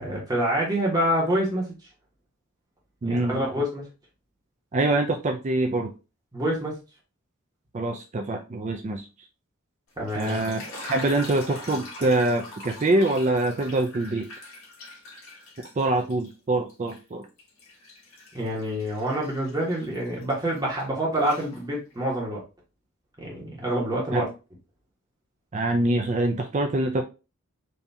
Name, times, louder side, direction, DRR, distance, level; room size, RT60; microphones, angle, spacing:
voice 1, 0.0-1.8 3.0-3.9 6.3-6.8 10.0-10.4 18.3-22.4 23.2-24.3, equal, 20° right, -4 dB, 1.3 m, -27 dB
voice 2, 3.0-3.4 4.7-5.9 7.7-9.1 10.2-10.6 10.9-14.3 15.8-17.2 24.1-24.3 25.5-27.0, right 2 dB, 35° right, 4 dB, 0.4 m, -24 dB
sound 1, 9.9-16.3 16.7-20.8 21.1-22.0, left 2 dB, 75° left, 1.6 m, -43 dB
4.2 x 2.8 x 3.5 m, 0.30 s
head